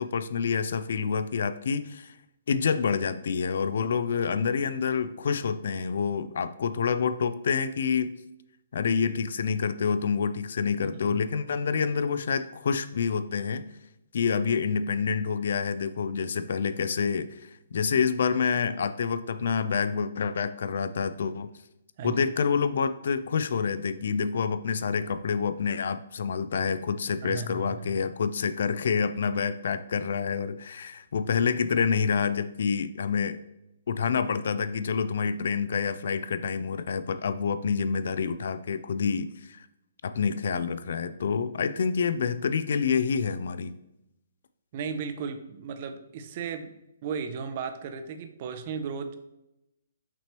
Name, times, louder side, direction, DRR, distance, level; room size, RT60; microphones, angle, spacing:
voice 1, 0.0-2.1 2.5-8.1 8.7-13.7 14.1-21.5 22.0-33.4 33.9-39.7 40.0-43.8, left 6 dB, 65° left, 12 dB, 0.3 m, -27 dB
voice 2, 27.2-27.9 44.7-46.7 47.0-49.1, right 6 dB, 45° right, 9 dB, 0.5 m, -35 dB
5.9 x 2.9 x 3.0 m, 0.87 s
hypercardioid pair, 140°, 0 cm